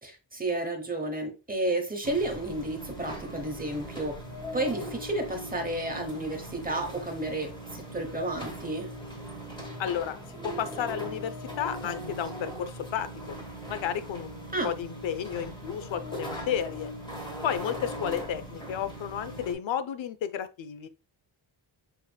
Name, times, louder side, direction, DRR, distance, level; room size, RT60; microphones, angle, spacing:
voice 1, 0.0-4.2 4.5-8.9 14.5-14.7, right 2 dB, 20° right, 0.9 m, -31 dB
sound 1, 2.0-19.5, equal, 10° left, 1.2 m, -40 dB
voice 2, 9.8-10.2 10.4-13.4 13.7-16.9 17.4-20.9, left 9 dB, 80° left, 0.6 m, -32 dB
5.6 x 3.5 x 2.2 m
wide cardioid pair, 155°, 46 cm